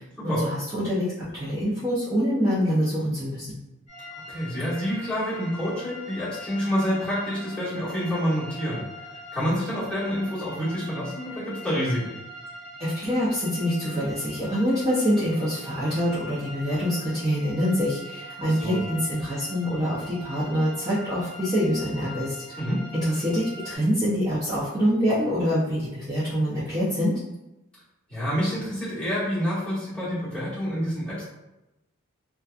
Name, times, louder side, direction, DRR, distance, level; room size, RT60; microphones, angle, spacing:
voice 1, 0.0-3.6 12.8-22.6 22.9-27.2, equal, 15° right, -11 dB, 0.5 m, -25 dB
sound 1, 3.9-23.8, left 1 dB, 30° left, 0.8 m, -42 dB
voice 2, 4.3-12.1 18.4-18.8 22.6-22.8 28.1-31.2, equal, 5° left, -11 dB, 1.2 m, -28 dB
2.8 x 2.2 x 2.4 m, 0.95 s
head